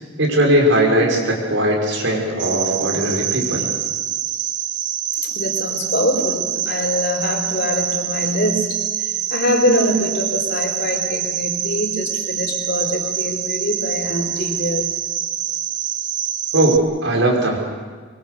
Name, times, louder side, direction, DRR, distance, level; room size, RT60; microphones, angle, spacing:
voice 1, 0.2-3.7 16.5-17.6, right 1 dB, 75° right, -1 dB, 5.6 m, -18 dB
Cricket, 2.4-16.8, right 10 dB, 60° right, 1.0 m, -25 dB
voice 2, 5.2-14.9, left 1 dB, 55° left, 0 dB, 3.9 m, -23 dB
24.0 x 23.5 x 6.8 m, 1.5 s
head